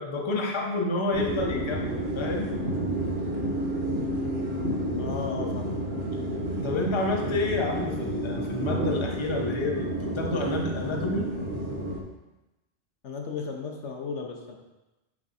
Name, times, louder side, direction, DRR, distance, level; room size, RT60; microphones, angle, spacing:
voice 1, 0.0-2.5 6.6-11.3, left 2 dB, 30° left, 1 dB, 0.8 m, -29 dB
sound 1, 1.1-12.0, right 1 dB, 60° right, 1.2 m, -30 dB
voice 2, 5.0-5.7 13.0-14.6, left 5 dB, 80° left, 2 dB, 1.1 m, -35 dB
7.4 x 3.6 x 4.2 m, 1.0 s
omnidirectional pair, 1.2 m